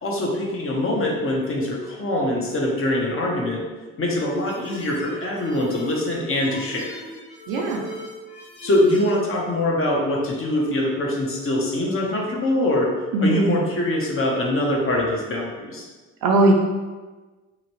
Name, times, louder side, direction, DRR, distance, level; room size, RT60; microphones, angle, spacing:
voice 1, 0.0-3.6 4.0-7.0 8.6-12.9 13.2-15.9, left 1 dB, 35° left, -1 dB, 0.8 m, -23 dB
sound 1, 4.3-9.2, equal, 70° left, 1.2 m, -38 dB
voice 2, 7.5-7.8 13.1-13.6 16.2-16.5, right 2 dB, 60° right, 1 dB, 0.6 m, -19 dB
2.9 x 2.5 x 3.0 m, 1.3 s
hypercardioid pair, 50°, 39 cm